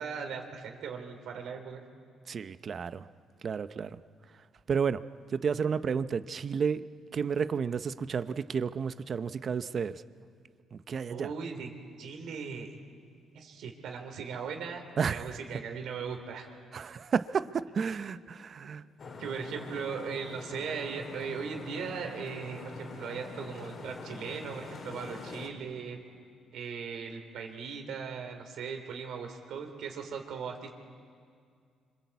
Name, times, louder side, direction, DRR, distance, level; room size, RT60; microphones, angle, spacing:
voice 1, 0.0-1.8 11.1-11.7 12.0-12.8 13.3-14.8 15.1-16.5 19.2-26.0 26.5-30.7, right 6 dB, 80° right, 4 dB, 3.2 m, -38 dB
voice 2, 2.3-3.1 3.4-4.0 4.7-5.0 5.3-6.9 7.1-10.0 10.7-11.3 15.0-15.3 16.7-18.8, right 6 dB, 50° right, 13 dB, 0.8 m, -31 dB
sound 1, 19.0-25.5, left 4 dB, 55° left, 3.7 m, -44 dB
27.5 x 25.5 x 8.4 m, 2.2 s
cardioid pair, 90°, 0 cm